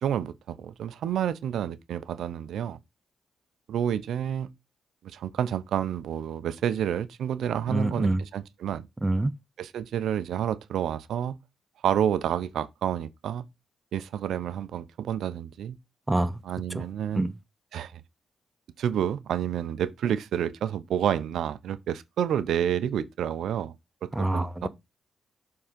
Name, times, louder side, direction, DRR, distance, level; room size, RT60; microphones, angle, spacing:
voice 1, 0.0-2.8 3.7-4.5 5.0-8.9 9.6-11.4 11.8-13.4 13.9-15.8 16.4-17.3 17.7-18.0 18.8-23.7 24.0-24.7, right 9 dB, 80° right, 0.6 m, -29 dB
voice 2, 7.7-8.2 9.0-9.3 16.1-16.4 16.7-16.8 17.2-17.3 24.1-24.7, right 2 dB, 15° right, 0.7 m, -26 dB
7.1 x 3.8 x 5.1 m
cardioid pair, 80°, 0 cm